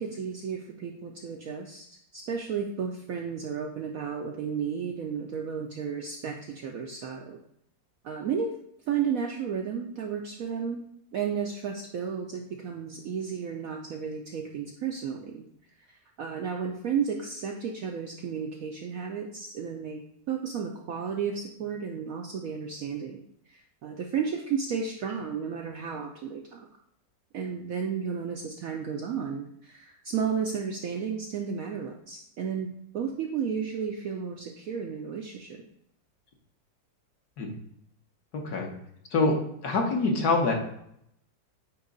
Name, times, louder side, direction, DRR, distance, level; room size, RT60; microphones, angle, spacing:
voice 1, 0.0-7.4 8.0-8.6 8.9-10.9 11.1-15.4 15.9-26.7 27.3-32.7 32.9-35.7, right 6 dB, 70° right, 2 dB, 0.8 m, -33 dB
voice 2, 38.3-38.7 39.1-39.4 39.6-40.5, left 3 dB, 60° left, 1 dB, 1.5 m, -25 dB
8.7 x 3.1 x 3.9 m, 0.74 s
omnidirectional pair, 2.0 m